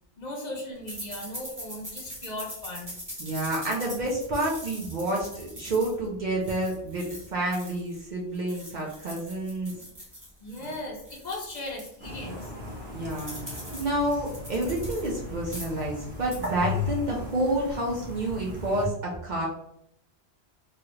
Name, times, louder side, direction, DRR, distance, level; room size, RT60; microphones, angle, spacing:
voice 1, 0.2-2.9 10.4-12.5, left 2 dB, 50° left, 0 dB, 0.7 m, -37 dB
sound 1, 0.9-8.0 8.3-12.0 12.4-12.5 12.7-15.2 15.4-15.9 16.2-16.5, equal, 20° right, 0.9 m, -42 dB
voice 2, 3.2-9.7 12.9-13.3 13.7-19.5, right 1 dB, 55° right, -3 dB, 0.7 m, -29 dB
sound 2, 12.0-18.9, left 3 dB, 80° right, 1.2 m, -37 dB
3.1 x 2.4 x 3.0 m, 0.73 s
omnidirectional pair, 1.0 m